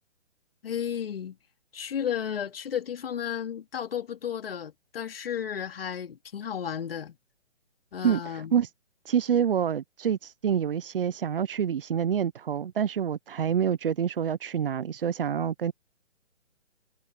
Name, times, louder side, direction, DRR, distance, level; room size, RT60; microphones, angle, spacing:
voice 1, 0.6-1.4 1.7-7.2 7.9-8.6, left 9 dB, 55° left, 2.4 m, -33 dB
voice 2, 8.0-8.7 9.0-15.7, right 8 dB, 50° right, 0.8 m, -27 dB
figure-of-eight pair, 135°, 36 cm